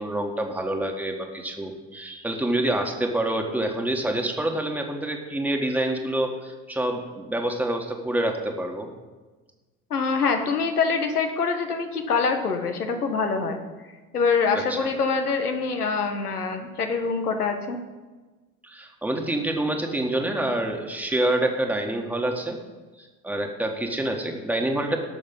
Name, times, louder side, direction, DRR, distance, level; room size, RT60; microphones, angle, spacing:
voice 1, 0.0-8.9 14.5-14.9 18.6-22.6 23.0-25.0, right 1 dB, 5° right, 2 dB, 1.7 m, -27 dB
voice 2, 9.9-13.6 14.1-17.8, left 5 dB, 85° left, 5 dB, 1.3 m, -25 dB
18.0 x 6.4 x 5.6 m, 1.3 s
figure-of-eight pair, 65°, 44 cm